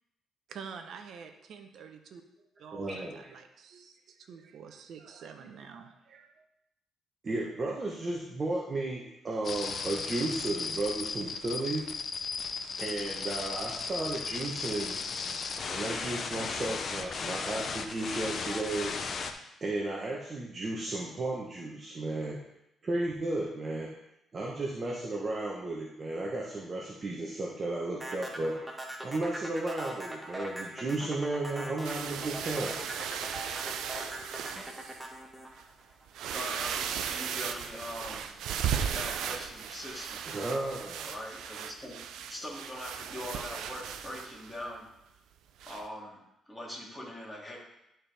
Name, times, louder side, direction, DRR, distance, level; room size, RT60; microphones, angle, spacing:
voice 1, 0.5-2.2 2.6-6.5, right 6 dB, 70° right, 6 dB, 0.9 m, -47 dB
voice 2, 2.7-3.3 7.2-11.8 12.8-15.0 15.7-18.9 19.6-22.4 22.8-23.9 24.3-28.6 29.0-32.8 40.2-41.1, right 2 dB, 35° right, -3 dB, 1.1 m, -34 dB
sound 1, 9.4-19.3, left 5 dB, 50° left, 0.7 m, -36 dB
sound 2, 28.0-36.4, right 1 dB, 10° right, 1.2 m, -41 dB
sound 3, 31.8-35.0 35.6-35.7 36.1-44.6 45.6-45.8, right 8 dB, 85° right, 0.5 m, -36 dB
voice 3, 36.3-38.3 38.7-40.2 41.0-44.9 45.7-46.2 46.5-47.6, left 1 dB, 10° left, -4 dB, 2.6 m, -42 dB
11.0 x 4.5 x 3.5 m, 0.85 s
cardioid pair, 90°, 0 cm